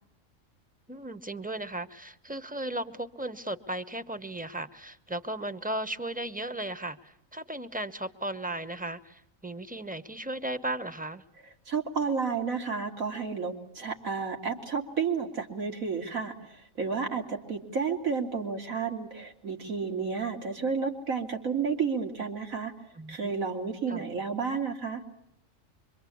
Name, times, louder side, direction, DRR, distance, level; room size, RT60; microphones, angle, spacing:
voice 1, 0.9-11.2 23.0-23.3 23.9-24.1, right 1 dB, 10° right, 11 dB, 0.8 m, -36 dB
voice 2, 11.7-22.7 23.1-25.0, right 5 dB, 85° right, 3 dB, 3.1 m, -31 dB
25.0 x 24.0 x 8.5 m, 0.76 s
omnidirectional pair, 1.4 m